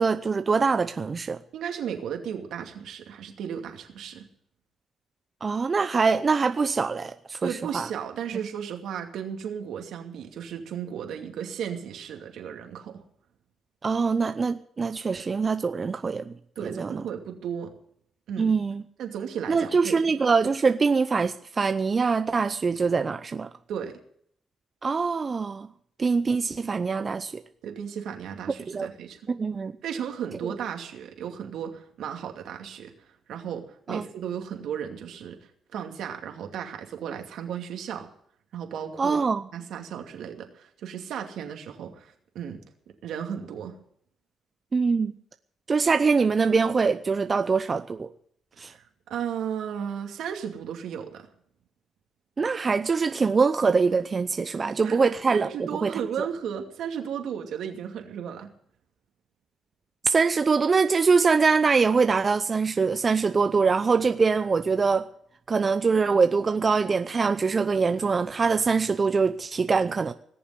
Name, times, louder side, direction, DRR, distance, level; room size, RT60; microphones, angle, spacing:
voice 1, 0.0-1.4 5.4-7.9 13.8-16.3 16.7-17.0 18.4-18.8 19.5-23.5 24.8-25.7 26.0-27.3 28.7-28.9 29.3-29.7 30.4-30.5 33.9-34.0 39.0-39.4 44.7-45.1 45.7-48.1 48.6-48.7 52.4-56.3 60.0-65.1 65.5-70.1, right 4 dB, 35° right, 10 dB, 0.7 m, -23 dB
voice 2, 1.5-4.3 7.4-13.0 16.6-17.7 18.3-18.6 19.0-20.0 23.7-23.9 27.6-29.3 29.8-38.1 38.5-39.2 39.5-42.6 43.0-43.8 48.6-51.2 54.5-55.0 55.3-58.5, right 8 dB, 75° right, 4 dB, 2.6 m, -35 dB
19.0 x 7.1 x 9.6 m, 0.66 s
cardioid pair, 90°, 0 cm